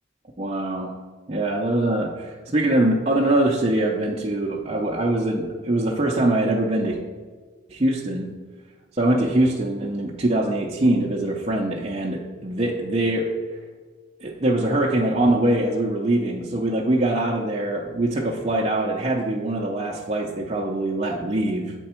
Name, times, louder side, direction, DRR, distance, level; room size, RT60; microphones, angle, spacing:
voice 1, 0.4-0.9 1.3-7.0 7.7-8.3 9.0-13.3 14.2-21.7, right 1 dB, 30° right, -3 dB, 0.5 m, -23 dB
7.6 x 4.4 x 4.3 m, 1.5 s
head